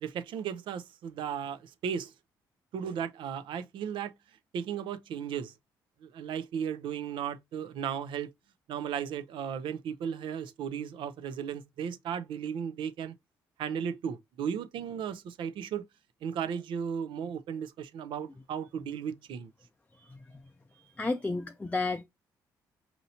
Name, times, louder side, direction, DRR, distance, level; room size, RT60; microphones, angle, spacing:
voice 1, 0.0-2.1 2.7-4.1 4.5-5.5 6.0-8.3 8.7-13.1 13.6-15.9 16.2-19.5, right 8 dB, 75° right, 0.5 m, -35 dB
voice 2, 19.9-20.2 20.7-22.0, left 3 dB, 15° left, 0.4 m, -33 dB
4.3 x 2.7 x 2.6 m
supercardioid pair, 70°, 8 cm